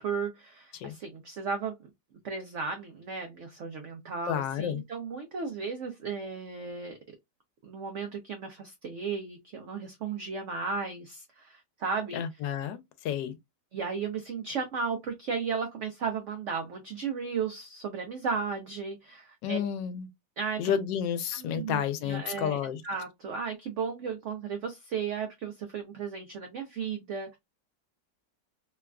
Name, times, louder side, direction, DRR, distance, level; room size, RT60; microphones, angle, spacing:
voice 1, 0.0-1.8 2.2-7.0 7.6-12.2 13.7-19.6 20.4-20.7 21.4-22.6 22.8-27.4, right 5 dB, 85° right, 0.6 m, -35 dB
voice 2, 4.3-4.8 12.1-13.4 19.4-20.1 20.6-22.8, left 9 dB, 90° left, 1.3 m, -31 dB
3.3 x 2.3 x 2.2 m
omnidirectional pair, 1.9 m